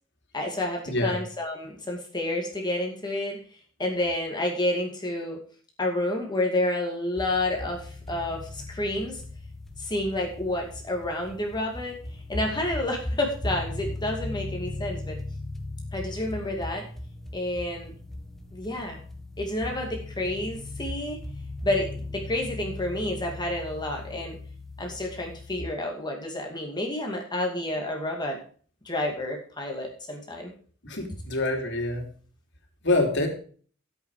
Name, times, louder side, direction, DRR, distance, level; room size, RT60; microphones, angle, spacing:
voice 1, 0.3-3.4 3.8-5.4 5.8-9.2 9.8-12.0 12.3-15.2 15.9-16.9 17.3-17.9 18.5-19.0 19.4-21.2 21.6-24.4 24.8-28.4 28.8-30.5, left 1 dB, 20° left, 1 dB, 2.3 m, -29 dB
voice 2, 0.9-1.2 30.8-32.0 32.8-33.3, left 2 dB, 60° left, 3 dB, 3.2 m, -25 dB
sound 1, 7.2-25.6, left 2 dB, ahead, 1.9 m, -38 dB
12.5 x 8.6 x 4.8 m, 0.43 s
head